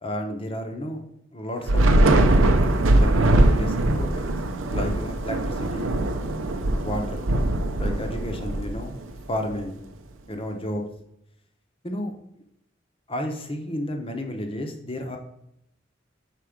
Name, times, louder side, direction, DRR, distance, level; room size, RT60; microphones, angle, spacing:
voice 1, 0.0-1.0 1.3-2.2 3.0-4.3 4.7-6.0 6.7-7.3 7.8-9.0 9.3-9.8 10.3-10.8 11.8-12.1 13.1-15.2, left 1 dB, 30° left, 4 dB, 0.9 m, -32 dB
Thunder / Rain, 1.7-9.2, right 1 dB, 80° right, 0.6 m, -21 dB
6.0 x 4.5 x 5.0 m, 0.77 s
head